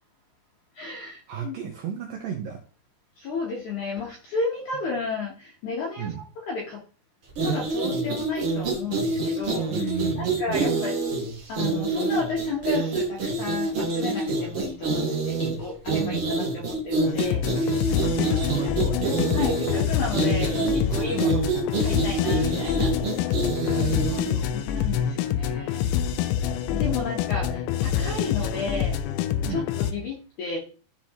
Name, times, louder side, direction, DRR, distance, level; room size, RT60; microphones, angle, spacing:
voice 1, 0.8-1.6 3.2-6.8 7.4-9.7 10.2-11.0 11.5-18.4 19.3-21.4 21.8-23.4 23.9-24.2 24.5-25.9 26.7-29.0 29.5-30.6, left 4 dB, 65° left, -2 dB, 2.0 m, -33 dB
voice 2, 1.3-2.6 4.7-4.8 6.0-6.2 9.7-10.6 16.0-16.3 18.0-19.2 20.8-21.4 23.5-24.5 26.5-26.9 29.5-29.6, right 8 dB, 75° right, 1 dB, 2.1 m, -34 dB
sound 1, 7.3-24.4, right 3 dB, 55° right, 1.6 m, -27 dB
sound 2, 17.1-29.9, left 9 dB, 85° left, 3.0 m, -26 dB
13.5 x 4.6 x 3.0 m, 0.38 s
omnidirectional pair, 5.2 m